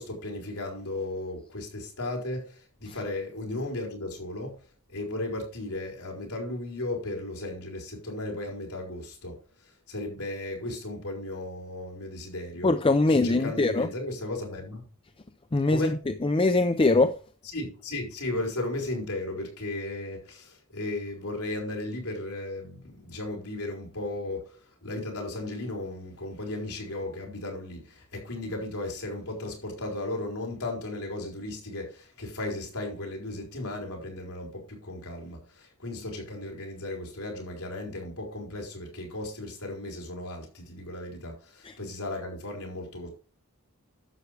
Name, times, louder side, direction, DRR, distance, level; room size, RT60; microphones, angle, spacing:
voice 1, 0.0-12.7 13.1-14.8 15.7-16.0 17.4-43.1, left 2 dB, 80° left, 4.4 m, -35 dB
voice 2, 12.6-13.9 15.5-15.9 16.2-17.1, left 2 dB, 25° left, 0.5 m, -22 dB
11.5 x 8.0 x 3.4 m
head